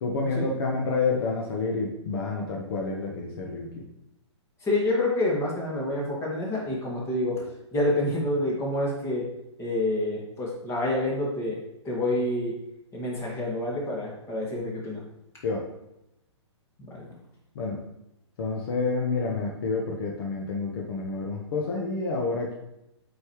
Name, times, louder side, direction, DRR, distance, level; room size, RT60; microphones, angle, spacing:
voice 1, 0.0-3.8 15.4-15.7 17.5-17.8 18.4-22.5, left 3 dB, 50° left, 0 dB, 1.1 m, -29 dB
voice 2, 4.6-7.4 7.7-9.3 9.6-11.6 11.8-12.5 12.9-15.0 16.8-17.1, left 1 dB, 15° left, -3 dB, 2.0 m, -27 dB
7.7 x 5.3 x 3.1 m, 0.88 s
hypercardioid pair, 125°, 15 cm